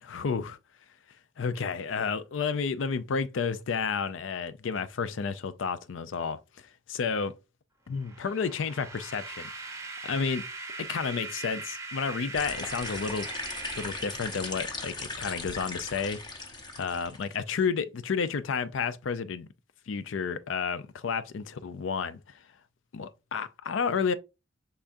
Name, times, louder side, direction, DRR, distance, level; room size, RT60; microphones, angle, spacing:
voice 1, 0.0-0.6 1.4-6.4 6.9-7.3 7.9-10.4 10.8-13.3 13.8-16.2 16.8-19.5 19.9-22.2 22.9-24.1, left 5 dB, 80° left, 0.4 m, -31 dB
sound 1, 8.0-15.0, right 3 dB, 15° right, 0.9 m, -41 dB
sound 2, 12.3-17.4, left 3 dB, 25° left, 0.8 m, -38 dB
5.5 x 3.5 x 2.6 m
head